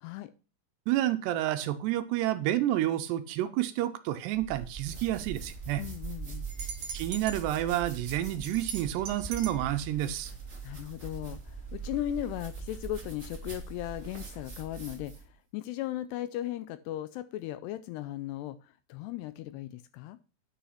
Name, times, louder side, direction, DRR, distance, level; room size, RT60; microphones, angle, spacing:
voice 1, 0.0-0.3 5.8-6.5 10.6-20.2, left 13 dB, 80° left, 13 dB, 2.5 m, -37 dB
voice 2, 0.9-5.8 6.9-10.3, right 13 dB, 80° right, 10 dB, 2.7 m, -29 dB
sound 1, 4.3-15.3, right 5 dB, 25° right, 1.7 m, -42 dB
sound 2, 6.5-7.4 8.1-9.6, right 6 dB, 50° right, 2.2 m, -40 dB
9.9 x 5.6 x 5.7 m, 0.34 s
omnidirectional pair, 5.1 m